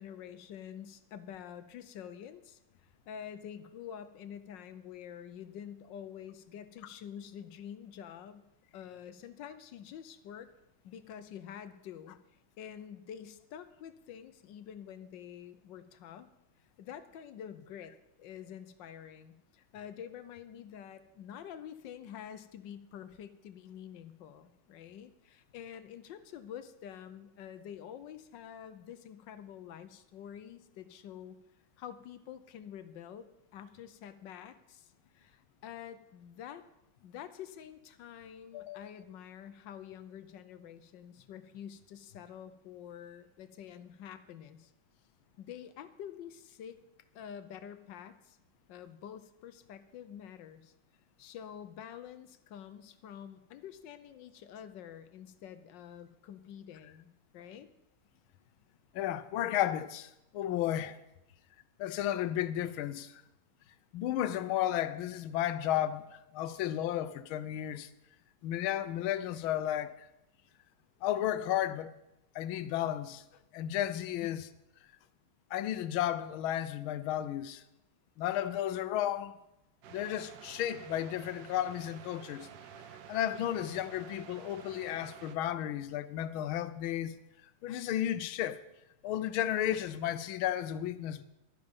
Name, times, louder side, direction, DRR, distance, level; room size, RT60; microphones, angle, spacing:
voice 1, 0.0-2.6 3.1-8.4 8.7-10.5 10.8-16.3 16.8-31.4 31.8-36.7 37.0-44.7 45.4-46.8 47.1-48.4 48.7-50.7 51.2-57.7 74.2-74.5, left 9 dB, 70° left, 1.3 m, -47 dB
voice 2, 38.5-38.9 58.9-61.0 61.8-63.2 63.9-67.9 68.4-70.1 71.0-71.9 72.3-73.2 73.5-74.5 75.5-77.6 78.2-79.4 79.9-82.5 83.1-87.2 87.6-88.6 89.0-91.2, left 12 dB, 85° left, 1.5 m, -33 dB
sound 1, 79.8-85.4, right 8 dB, 70° right, 1.4 m, -50 dB
12.0 x 10.5 x 5.3 m
omnidirectional pair, 2.2 m